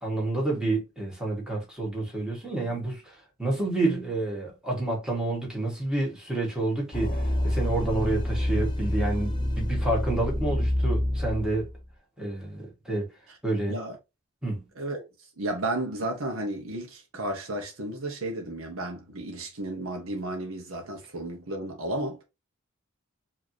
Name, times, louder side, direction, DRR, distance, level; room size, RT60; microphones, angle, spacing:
voice 1, 0.0-11.7 12.2-13.1 13.4-13.8 14.4-14.6, right 2 dB, 5° right, 1.8 m, -29 dB
sound 1, 6.9-11.9, left 1 dB, 25° left, 0.8 m, -27 dB
voice 2, 14.8-15.1 15.4-22.2, right 1 dB, 80° right, 1.1 m, -33 dB
5.0 x 2.9 x 2.8 m
head